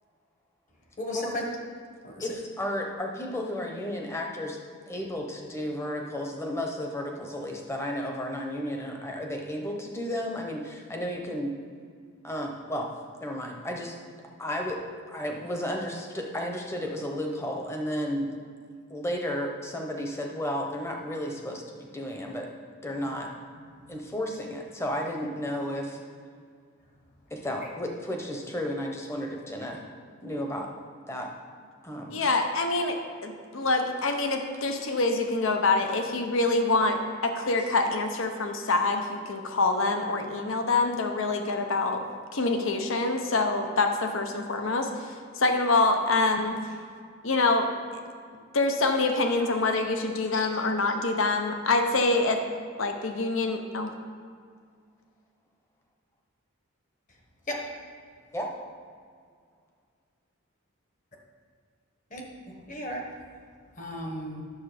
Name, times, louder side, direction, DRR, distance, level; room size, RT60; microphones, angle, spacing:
voice 1, 1.0-1.4 2.0-2.3 23.8-23.9 27.6-27.7 57.5-57.6 62.1-62.2 62.5-63.1 63.8-64.4, equal, 35° left, 0 dB, 1.3 m, -35 dB
voice 2, 2.2-4.6 4.9-11.6 12.2-12.9 13.2-14.0 14.4-14.8 15.1-18.3 18.9-22.5 22.8-23.3 23.9-26.0 27.3-29.8 30.2-30.7 31.1-31.3 31.8-32.2 58.3-58.5, equal, 10° left, 1 dB, 0.9 m, -33 dB
voice 3, 32.1-42.0 42.3-46.6 47.2-47.7 48.5-52.4 52.8-53.9, left 3 dB, 70° left, 5 dB, 0.9 m, -26 dB
9.8 x 7.0 x 5.0 m, 2.1 s
head